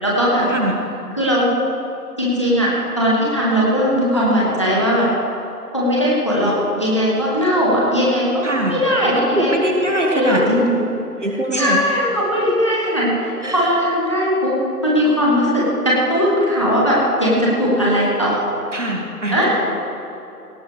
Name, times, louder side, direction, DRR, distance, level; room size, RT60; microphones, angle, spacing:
voice 1, 0.0-0.5 1.2-1.5 2.2-5.1 5.7-8.4 8.7-9.5 10.1-10.8 11.5-14.5 14.8-18.4 19.3-19.6, equal, 20° left, -5 dB, 1.4 m, -18 dB
voice 2, 8.4-8.8 9.2-10.7 11.2-11.8 13.4-13.6 17.3-17.4 18.7-19.6, right 1 dB, 50° right, 0 dB, 1.7 m, -22 dB
17.5 x 8.6 x 4.8 m, 3.0 s
figure-of-eight pair, 170°, 47 cm